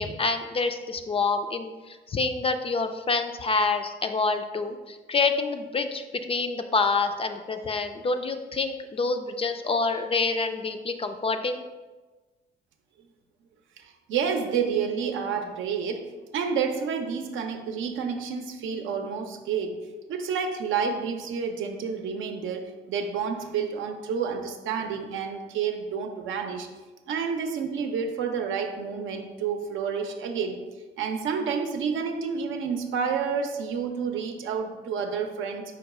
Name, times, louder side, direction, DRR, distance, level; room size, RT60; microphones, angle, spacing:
voice 1, 0.0-1.7 2.1-11.6, left 4 dB, 30° left, 7 dB, 0.3 m, -27 dB
voice 2, 13.8-26.7 27.1-30.6 31.0-35.6, right 6 dB, 80° right, 5 dB, 0.6 m, -29 dB
4.7 x 2.3 x 4.8 m, 1.3 s
cardioid pair, 90°, 20 cm